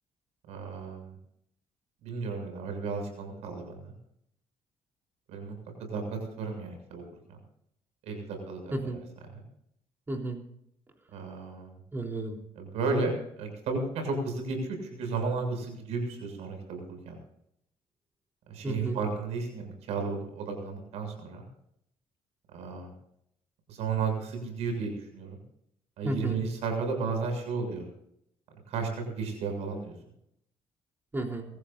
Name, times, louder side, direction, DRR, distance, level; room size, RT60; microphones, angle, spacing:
voice 1, 0.5-1.2 2.0-3.9 5.3-6.0 6.4-7.0 7.3-7.4 8.0-9.4 11.1-11.8 12.6-17.2 18.5-21.4 22.5-22.9 23.7-25.4 26.0-27.9 28.7-28.9 29.2-30.0, right 4 dB, 80° right, 5 dB, 7.1 m, -33 dB
voice 2, 10.1-10.4 11.9-12.4 18.6-19.0 26.0-26.4 31.1-31.5, right 1 dB, 20° right, 2 dB, 3.6 m, -32 dB
25.5 x 14.5 x 2.6 m, 0.73 s
cardioid pair, 115°, 11 cm